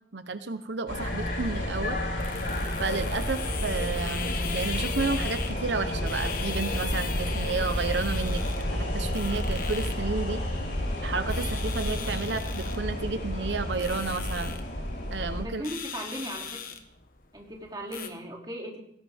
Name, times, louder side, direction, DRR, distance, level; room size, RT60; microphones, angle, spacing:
voice 1, 0.1-2.0 2.8-8.4 8.8-10.4 11.0-14.5 15.1-15.6, right 4 dB, 85° right, 10 dB, 0.9 m, -31 dB
sound 1, 0.9-15.4, left 1 dB, 75° left, 4.5 m, -30 dB
sound 2, 0.9-18.1, left 7 dB, 50° left, 1.4 m, -40 dB
voice 2, 15.4-16.7 17.3-18.8, equal, 25° right, 0 dB, 2.8 m, -37 dB
18.5 x 16.5 x 3.6 m, 0.73 s
head